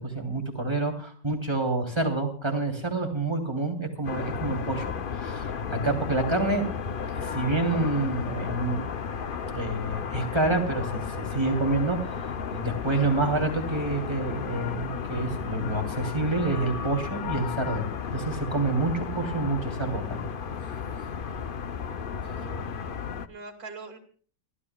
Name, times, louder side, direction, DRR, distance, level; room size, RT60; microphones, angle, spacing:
voice 1, 0.0-4.8 5.2-6.6 7.2-8.8 9.5-12.0 12.5-20.2, right 2 dB, 15° right, 1 dB, 3.0 m, -28 dB
sound 1, 4.0-23.3, left 6 dB, 55° left, 0.6 m, -33 dB
voice 2, 22.1-22.7 23.3-24.0, right 4 dB, 55° right, 5 dB, 2.9 m, -42 dB
29.5 x 13.0 x 2.3 m, 0.43 s
omnidirectional pair, 1.9 m